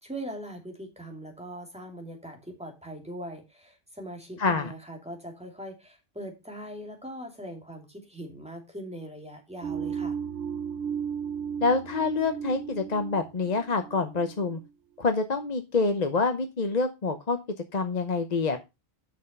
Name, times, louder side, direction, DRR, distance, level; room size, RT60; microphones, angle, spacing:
voice 1, 0.0-10.2, right 1 dB, 5° right, 2 dB, 2.7 m, -41 dB
voice 2, 4.4-4.7 11.6-14.6 15.0-17.4 17.7-18.6, left 4 dB, 45° left, 8 dB, 0.9 m, -26 dB
sound 1, 9.6-14.7, right 7 dB, 75° right, 0.9 m, -35 dB
7.5 x 6.4 x 5.3 m, 0.25 s
omnidirectional pair, 1.1 m